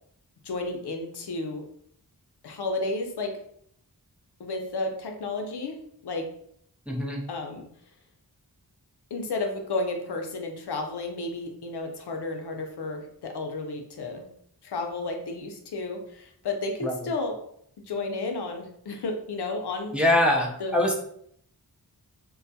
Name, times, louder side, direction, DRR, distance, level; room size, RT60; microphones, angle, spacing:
voice 1, 0.4-1.6 2.4-3.3 4.4-5.8 6.0-6.3 7.3-7.6 9.1-14.3 14.6-17.4 17.9-20.0 20.6-20.8, left 3 dB, 75° left, 3 dB, 0.5 m, -32 dB
voice 2, 6.9-7.2 16.8-16.9 19.9-20.9, left 1 dB, 5° right, 0 dB, 0.4 m, -23 dB
2.2 x 2.2 x 2.6 m, 0.67 s
wide cardioid pair, 65°, 40 cm